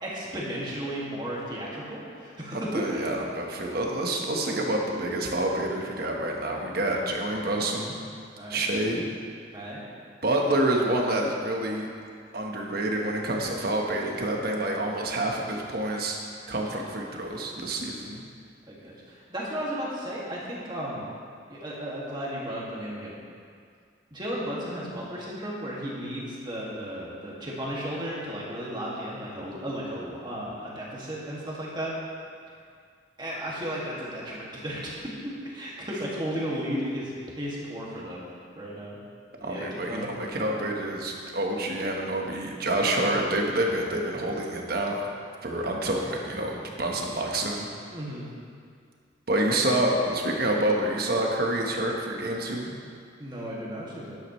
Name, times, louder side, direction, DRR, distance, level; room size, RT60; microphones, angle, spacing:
voice 1, 0.0-2.8 8.4-8.6 9.5-9.8 18.7-21.1 21.5-23.2 24.1-31.9 33.2-39.0 39.4-40.1 47.9-48.3 53.2-54.2, equal, 25° right, -6 dB, 2.1 m, -34 dB
voice 2, 2.5-8.0 8.5-9.0 10.2-11.9 12.3-16.2 16.5-18.2 39.4-45.1 45.4-47.7 49.3-52.7, right 1 dB, 55° right, 0 dB, 1.3 m, -27 dB
11.5 x 10.5 x 3.2 m, 2.2 s
head